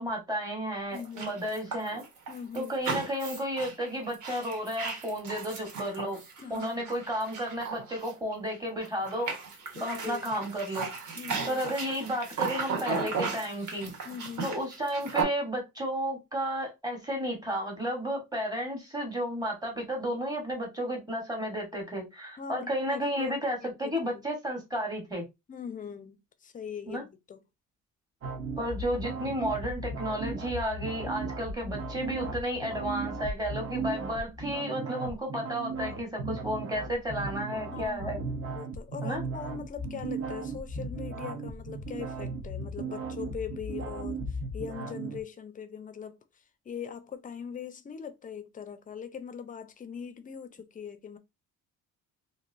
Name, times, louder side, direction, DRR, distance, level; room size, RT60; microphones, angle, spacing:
voice 1, 0.0-2.0 2.5-6.2 6.5-9.3 9.8-10.9 11.5-13.9 14.4-25.2 26.9-27.0 28.6-38.2 39.0-39.2, equal, 10° right, 1.1 m, -32 dB
voice 2, 0.9-1.4 2.3-2.8 6.4-7.0 9.8-10.4 11.2-11.6 14.0-14.6 22.4-24.3 25.5-27.4 37.6-38.2 38.5-46.2 46.7-51.2, left 7 dB, 25° left, 0.4 m, -41 dB
sound 1, 1.0-8.5 8.8-15.2, right 5 dB, 60° right, 1.2 m, -36 dB
sound 2, 28.2-45.2, right 3 dB, 40° right, 0.8 m, -36 dB
3.1 x 2.6 x 2.5 m
cardioid pair, 140°, 33 cm